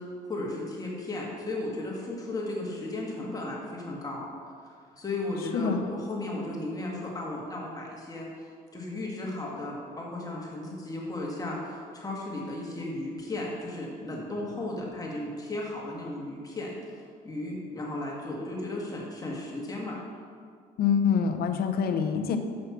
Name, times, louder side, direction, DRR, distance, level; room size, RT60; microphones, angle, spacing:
voice 1, 0.0-4.2 4.7-8.3 8.7-16.7 17.2-20.0, left 2 dB, 20° left, -3 dB, 1.8 m, -35 dB
voice 2, 5.5-5.8 20.8-22.4, left 6 dB, 65° left, 7 dB, 0.8 m, -25 dB
6.5 x 5.8 x 6.8 m, 2.1 s
cardioid pair, 110°, 17 cm